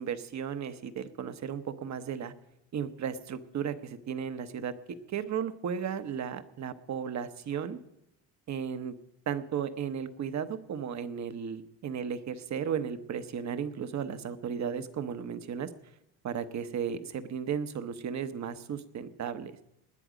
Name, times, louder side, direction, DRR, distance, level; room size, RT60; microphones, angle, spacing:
voice 1, 0.0-2.3 2.7-7.8 8.5-8.9 9.3-15.7 16.2-19.6, right 7 dB, 50° right, 10 dB, 1.1 m, -35 dB
19.5 x 10.0 x 5.1 m, 0.87 s
cardioid pair, 95°, 36 cm